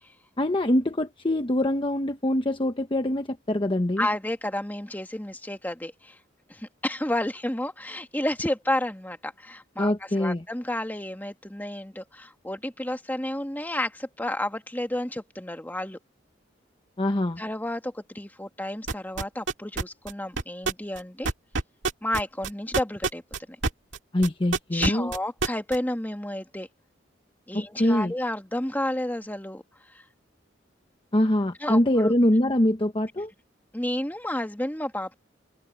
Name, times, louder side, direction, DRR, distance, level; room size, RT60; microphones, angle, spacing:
voice 1, 0.4-4.1 9.8-10.4 17.0-17.4 24.1-25.1 27.5-28.1 31.1-33.3, left 1 dB, 25° left, 1.0 m, -24 dB
voice 2, 4.0-6.2 6.5-16.0 17.4-21.3 22.0-23.2 24.7-26.7 27.5-29.6 29.9-30.0 31.6-32.1 33.7-35.1, left 1 dB, 10° left, 1.8 m, -31 dB
sound 1, 18.9-24.0 24.2-25.8, right 4 dB, 75° right, 2.0 m, -26 dB
open air
head